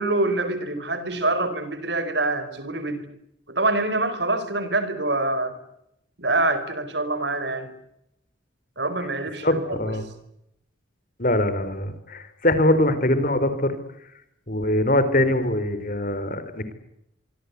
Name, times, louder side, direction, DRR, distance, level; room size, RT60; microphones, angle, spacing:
voice 1, 0.0-3.1 3.5-5.6 6.2-7.7 8.8-9.9, right 2 dB, 60° right, 12 dB, 4.7 m, -25 dB
voice 2, 9.4-10.1 11.2-13.8 14.5-16.7, left 1 dB, 45° left, 12 dB, 4.2 m, -22 dB
25.5 x 24.5 x 8.3 m, 0.79 s
head